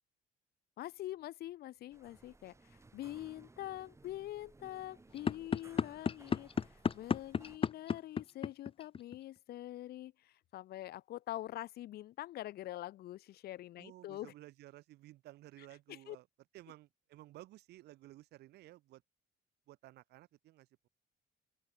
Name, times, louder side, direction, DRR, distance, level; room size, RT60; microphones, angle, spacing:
voice 1, 0.8-6.5 6.9-14.3 15.9-16.2, left 14 dB, 70° left, 1.6 m, -45 dB
sound 1, 1.9-7.6, right 3 dB, 15° right, 5.2 m, -60 dB
sound 2, 5.1-9.2, left 6 dB, 35° left, 1.2 m, -32 dB
voice 2, 13.8-16.3 16.5-19.0 19.7-20.9, right 16 dB, 80° right, 3.6 m, -55 dB
open air
cardioid pair, 110°, 17 cm